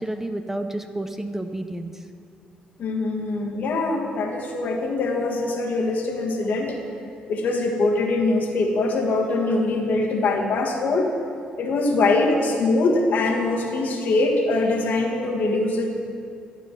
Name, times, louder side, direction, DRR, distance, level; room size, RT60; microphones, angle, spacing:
voice 1, 0.0-2.0, right 1 dB, 10° right, 8 dB, 0.6 m, -30 dB
voice 2, 2.8-6.8 7.3-11.1 11.6-15.9, left 2 dB, 65° left, 1 dB, 1.5 m, -23 dB
12.5 x 4.9 x 5.7 m, 2.3 s
supercardioid pair, 60°, 3 cm